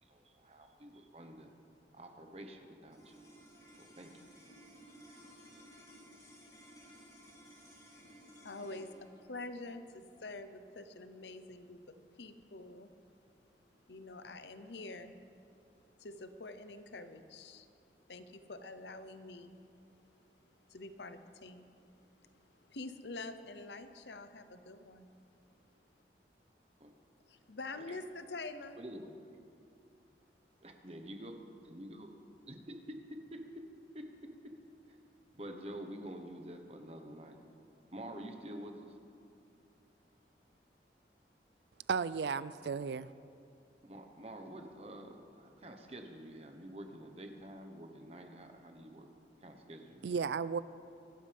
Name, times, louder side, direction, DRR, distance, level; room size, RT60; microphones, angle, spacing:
voice 1, 0.0-1.5 1.9-3.2 3.8-4.1 26.8-26.9 27.7-28.0 28.8-29.2 30.6-33.7 33.9-34.3 34.9-35.0 35.3-37.4 37.9-39.0 43.8-49.1 49.4-50.1, right 1 dB, 35° right, 1.2 m, -48 dB
sound 1, 2.9-13.4, equal, 20° left, 3.1 m, -58 dB
voice 2, 8.0-11.8 12.1-12.9 13.9-15.2 16.0-17.7 18.1-19.6 20.7-21.8 22.1-25.1 27.3-28.8, left 2 dB, 80° left, 0.9 m, -47 dB
voice 3, 41.9-43.1 50.0-50.6, right 5 dB, 75° right, 0.4 m, -34 dB
25.0 x 13.0 x 3.5 m
head